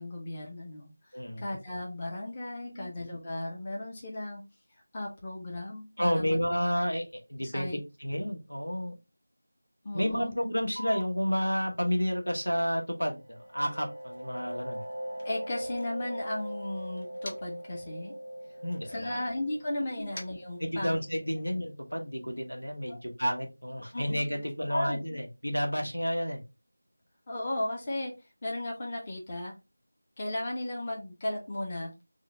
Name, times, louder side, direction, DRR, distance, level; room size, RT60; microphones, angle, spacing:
voice 1, 0.0-4.4 4.9-6.4 7.4-7.8 9.8-10.4 15.2-18.1 18.9-21.0 22.9-23.0 23.9-24.2 24.7-25.0 27.3-28.1 28.4-29.5 30.2-32.0, left 1 dB, 20° left, -1 dB, 0.6 m, -35 dB
voice 2, 1.1-1.4 2.6-2.9 6.0-8.9 9.9-14.8 18.6-19.2 20.0-20.1 20.6-26.4, equal, 80° left, 2 dB, 1.1 m, -31 dB
sound 1, 10.8-17.8, equal, 65° left, 0.8 m, -52 dB
sound 2, 13.1-22.6, right 1 dB, 65° right, 0.3 m, -41 dB
Motor vehicle (road), 13.3-17.7 18.0-21.3, left 1 dB, 45° left, 1.1 m, -53 dB
3.8 x 2.2 x 3.1 m, 0.26 s
figure-of-eight pair, 170°, 0 cm